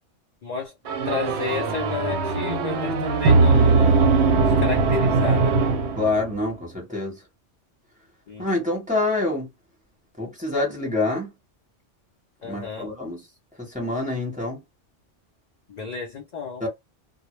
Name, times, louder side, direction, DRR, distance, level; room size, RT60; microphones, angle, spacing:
voice 1, 0.4-0.7 1.1-4.3 4.6-5.6 8.3-8.5 12.4-12.9 15.7-16.7, left 6 dB, 60° left, 0.4 m, -32 dB
sound 1, 0.9-6.4, right 4 dB, 70° right, 0.8 m, -20 dB
voice 2, 6.0-7.2 8.4-9.5 10.2-11.3 12.4-13.2 13.6-14.6 16.6-16.7, left 2 dB, 5° right, 1.0 m, -26 dB
2.1 x 2.0 x 3.0 m
omnidirectional pair, 1.2 m